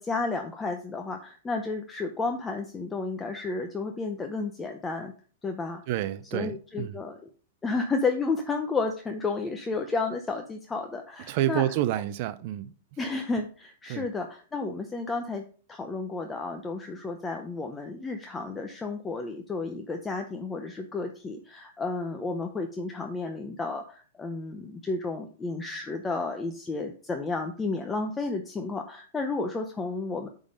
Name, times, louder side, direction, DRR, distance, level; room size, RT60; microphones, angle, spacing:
voice 1, 0.0-5.1 5.4-5.8 6.3-7.2 7.6-11.6 13.0-15.4 15.7-30.3, left 3 dB, 10° left, 0.6 m, -32 dB
voice 2, 5.9-7.0 11.3-12.7 13.9-14.1, right 13 dB, 40° right, 0.4 m, -29 dB
8.7 x 3.7 x 5.1 m
supercardioid pair, 165°, 0 cm